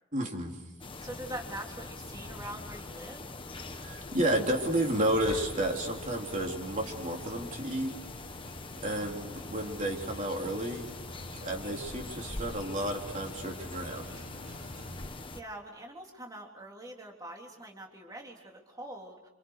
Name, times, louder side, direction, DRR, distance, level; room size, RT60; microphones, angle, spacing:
voice 1, 0.1-0.6 3.7-7.9 8.8-10.9 11.4-14.1, right 1 dB, 40° right, 1 dB, 3.6 m, -31 dB
sound 1, 0.8-15.4, left 2 dB, 25° left, 1.5 m, -43 dB
voice 2, 1.0-3.3 15.0-19.3, right 1 dB, 20° right, 0 dB, 3.5 m, -44 dB
sound 2, 5.2-15.8, right 1 dB, 75° right, 6.2 m, -51 dB
29.5 x 28.0 x 6.6 m, 0.93 s
head